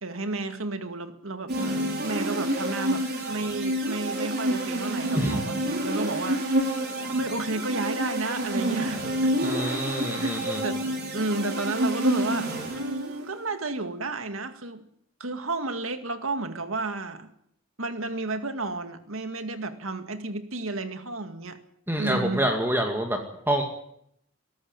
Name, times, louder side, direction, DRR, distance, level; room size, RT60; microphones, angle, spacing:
voice 1, 0.0-1.5 2.0-6.4 7.0-10.3 10.6-10.8 11.1-12.5 12.7-14.8 15.2-17.3 17.8-21.6 22.0-22.4, right 2 dB, 80° right, 8 dB, 2.1 m, -32 dB
sound 1, 1.5-13.3, right 1 dB, 50° right, 4.9 m, -28 dB
voice 2, 9.4-10.6 21.9-23.2 23.5-23.6, right 1 dB, 10° right, 3 dB, 2.1 m, -26 dB
22.5 x 13.5 x 9.1 m, 0.73 s
head